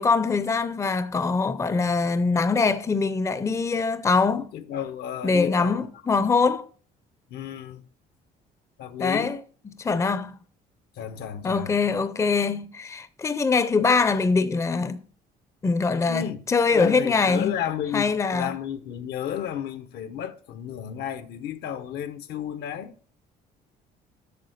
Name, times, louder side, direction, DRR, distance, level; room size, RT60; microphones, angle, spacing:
voice 1, 0.0-4.4 5.2-6.7 9.0-9.4 9.8-10.4 11.4-15.0 15.6-17.5 17.9-18.5, left 4 dB, 15° left, 0.5 m, -23 dB
voice 2, 4.4-5.9 7.3-7.9 8.8-9.3 11.0-12.0 16.1-16.4 16.7-22.9, left 9 dB, 70° left, 0.9 m, -33 dB
8.4 x 6.2 x 6.5 m
cardioid pair, 110°, 17 cm